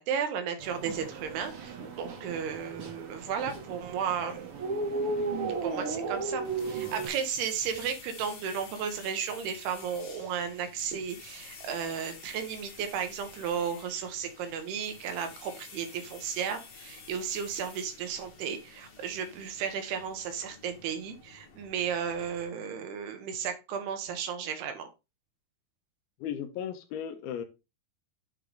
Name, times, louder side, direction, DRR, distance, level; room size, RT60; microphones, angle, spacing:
voice 1, 0.0-4.6 5.6-24.9, right 7 dB, 85° right, 6 dB, 3.1 m, -34 dB
sound 1, 0.6-7.1, right 3 dB, 60° right, 1.5 m, -35 dB
sound 2, 6.4-22.5, left 5 dB, 50° left, 2.1 m, -50 dB
voice 2, 26.2-27.4, left 9 dB, 85° left, 8 dB, 2.7 m, -36 dB
9.2 x 3.8 x 3.4 m, 0.26 s
omnidirectional pair, 4.5 m